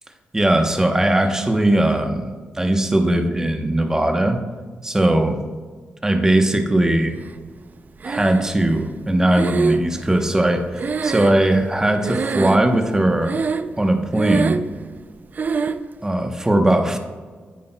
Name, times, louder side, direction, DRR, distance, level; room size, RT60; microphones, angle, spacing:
voice 1, 0.3-4.4 4.8-5.4 6.0-7.1 8.0-13.4 13.8-14.6 16.0-17.0, right 1 dB, 15° right, 5 dB, 0.9 m, -19 dB
Breathing, 8.0-8.7 9.3-11.8 12.0-12.8 13.2-13.8 14.1-14.8 15.4-15.8, right 5 dB, 45° right, 0.4 m, -24 dB
9.7 x 8.4 x 2.2 m, 1.5 s
cardioid pair, 90°, 4 cm